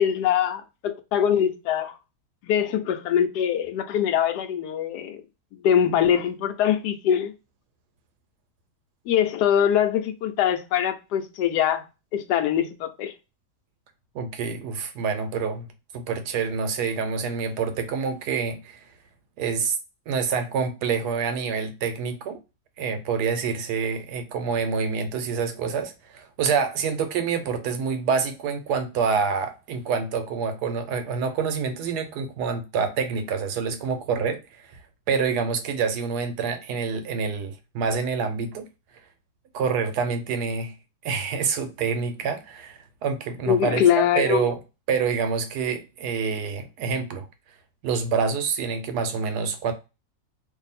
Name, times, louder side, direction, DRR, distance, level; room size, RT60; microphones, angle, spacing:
voice 1, 0.0-2.0 2.4-5.2 5.5-7.3 9.1-11.8 12.1-13.1 43.5-44.5, left 9 dB, 85° left, 1.2 m, -23 dB
voice 2, 14.1-15.7 15.9-18.8 19.4-19.8 20.1-22.4 22.8-34.8 35.1-38.7 39.5-40.7 41.0-43.8 44.2-44.6 44.9-47.3 47.8-49.7, right 5 dB, 85° right, 1.2 m, -27 dB
2.7 x 2.6 x 4.0 m
omnidirectional pair, 1.7 m